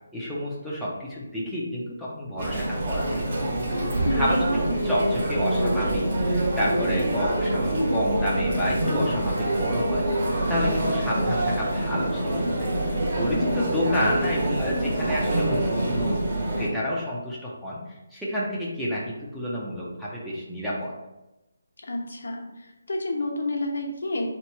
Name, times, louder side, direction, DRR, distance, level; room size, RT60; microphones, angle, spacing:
voice 1, 0.1-3.2 4.1-12.7 13.2-16.2 16.6-17.8 18.1-20.9, equal, ahead, -9 dB, 0.5 m, -29 dB
Chatter, 2.4-16.7, right 1 dB, 45° right, 1.1 m, -25 dB
voice 2, 4.0-4.4 21.8-24.3, left 2 dB, 70° left, 0 dB, 0.9 m, -30 dB
3.2 x 3.0 x 4.4 m, 0.97 s
hypercardioid pair, 170°, 0 cm